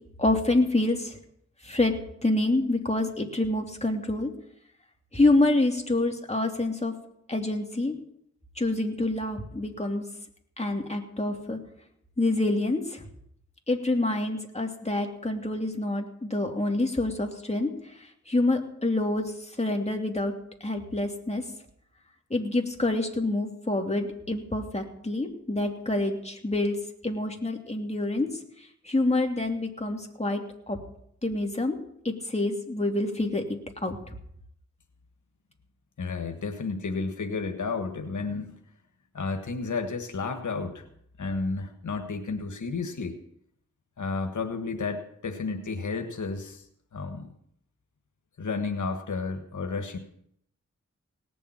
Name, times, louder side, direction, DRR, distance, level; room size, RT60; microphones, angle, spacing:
voice 1, 0.2-1.2 1.6-1.9 2.2-4.3 5.1-6.9 7.3-7.9 8.6-10.0 10.6-11.6 12.2-13.0 13.7-17.7 18.0-20.3 20.6-21.4 22.3-26.8 27.0-28.3 28.8-30.4 30.7-30.8 31.2-31.8 32.0-34.0, left 2 dB, 20° left, 2 dB, 2.9 m, -27 dB
voice 2, 36.0-38.6 39.1-40.8 41.2-43.1 44.0-46.6 46.9-47.3 48.4-50.0, left 4 dB, 85° left, 5 dB, 1.5 m, -32 dB
18.5 x 7.1 x 8.8 m, 0.71 s
cardioid pair, 40°, 29 cm